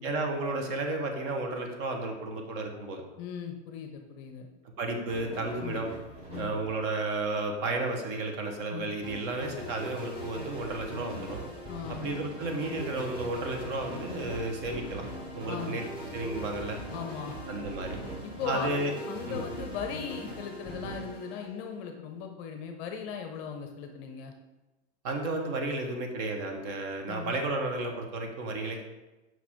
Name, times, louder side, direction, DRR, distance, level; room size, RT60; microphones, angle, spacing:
voice 1, 0.0-3.0 4.8-5.9 6.4-11.4 11.9-15.0 15.3-15.8 16.1-16.8 17.5-18.0 18.4-18.9 19.3-19.4 25.0-28.8, right 2 dB, 40° right, 3 dB, 1.0 m, -32 dB
voice 2, 3.2-4.5 5.6-5.8 6.3-6.5 8.7-8.9 11.7-12.1 15.5-15.8 16.9-17.4 18.2-18.7 19.1-24.3 27.1-27.3, left 7 dB, 35° left, 5 dB, 0.7 m, -38 dB
sound 1, 5.1-7.2 7.5-7.6 8.0-18.5, equal, 55° right, 2.1 m, -47 dB
sound 2, 9.0-22.0, equal, 15° right, 1.9 m, -41 dB
5.9 x 4.7 x 3.5 m, 1.1 s
hypercardioid pair, 110°, 36 cm